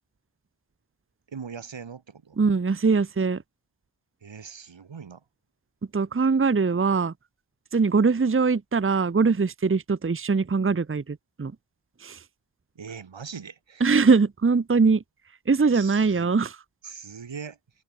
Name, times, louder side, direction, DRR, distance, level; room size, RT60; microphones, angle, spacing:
voice 1, 1.3-2.4 4.2-5.2 12.7-13.9 15.7-16.4 16.8-17.6, right 6 dB, 90° right, 4.8 m, -40 dB
voice 2, 2.4-3.4 5.9-7.1 7.7-11.5 12.0-12.2 13.8-15.0 15.5-16.6, right 4 dB, 30° right, 0.9 m, -22 dB
open air
cardioid pair, 55°, 44 cm